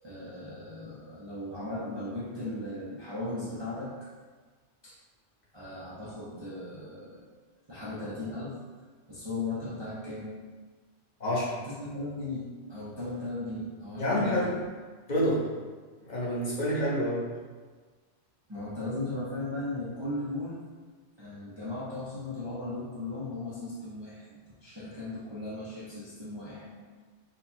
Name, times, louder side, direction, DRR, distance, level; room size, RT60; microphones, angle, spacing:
voice 1, 0.0-4.1 4.8-5.0 5.5-7.2 7.7-8.6 9.1-10.3 11.7-14.5 18.5-20.6 21.2-26.8, left 2 dB, 25° right, -9 dB, 0.6 m, -37 dB
voice 2, 11.2-11.5 14.0-14.5 15.1-15.4 16.0-17.3, equal, 35° left, -7 dB, 1.2 m, -27 dB
4.0 x 2.3 x 4.3 m, 1.4 s
omnidirectional pair, 1.3 m